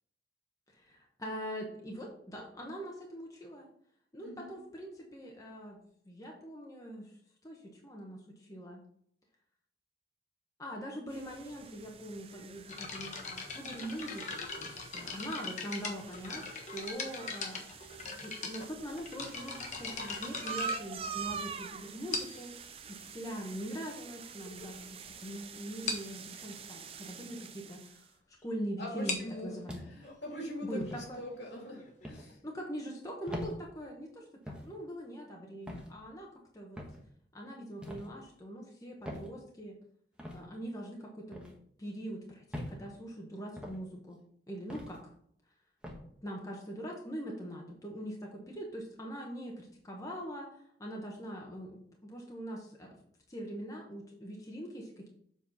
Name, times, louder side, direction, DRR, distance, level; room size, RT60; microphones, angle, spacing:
voice 1, 0.7-3.7 4.1-5.8 6.0-7.1 7.4-8.8 10.6-17.7 18.0-29.2 29.4-29.8 30.6-31.2 32.4-36.8 37.3-39.8 40.3-41.5 41.8-44.2 44.5-45.0 46.2-52.9 53.3-55.1, equal, 20° left, -1 dB, 1.1 m, -42 dB
sound 1, 11.1-28.1, right 6 dB, 35° right, 0.5 m, -46 dB
sound 2, 12.7-21.5 22.1-22.6 23.4-23.5 24.1-24.2 24.5-24.7 25.0-25.1 25.4-25.5 25.9-26.2 28.8-32.3, left 4 dB, 45° left, 1.3 m, -41 dB
voice 2, 28.8-29.5 29.9-32.4, left 1 dB, 70° left, -1 dB, 2.8 m, -42 dB
Footsteps Wood, 29.7-30.1 30.8-31.1 32.0-32.3 33.3-33.5 34.5-34.7 35.7-35.9 36.8-37.0 37.8-38.1 39.0-39.3 40.2-40.4 41.3-41.5 42.5-42.8 43.6-43.8 44.7-45.0 45.8-46.0, left 1 dB, 5° right, 1.2 m, -42 dB
7.4 x 4.4 x 5.5 m, 0.66 s
head